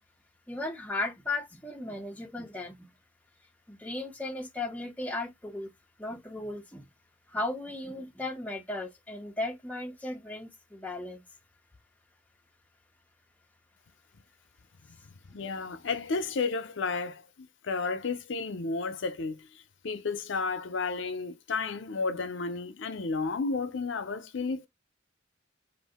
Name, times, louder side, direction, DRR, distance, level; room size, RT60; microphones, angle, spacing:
voice 1, 0.5-2.9 3.7-5.7 6.0-6.9 7.3-11.2, left 2 dB, 10° left, 0.5 m, -36 dB
voice 2, 15.2-19.5 19.8-24.7, left 4 dB, 70° left, 0.6 m, -32 dB
2.6 x 2.5 x 3.5 m
head